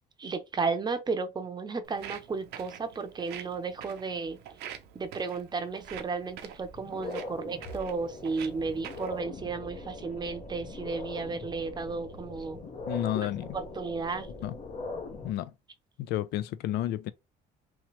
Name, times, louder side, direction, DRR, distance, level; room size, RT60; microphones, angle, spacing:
voice 1, 0.2-4.4 4.9-12.6 13.2-13.3 13.5-14.3, right 4 dB, 25° right, 0.6 m, -33 dB
Walk footsteps, 1.8-9.2, right 10 dB, 85° right, 0.6 m, -46 dB
sound 1, 5.9-6.0 6.5-15.3, left 2 dB, 40° left, 0.8 m, -41 dB
voice 2, 12.9-13.6 14.4-14.6 15.2-15.5 16.1-17.1, left 13 dB, 75° left, 0.4 m, -31 dB
3.0 x 2.8 x 3.0 m
cardioid pair, 110°, 17 cm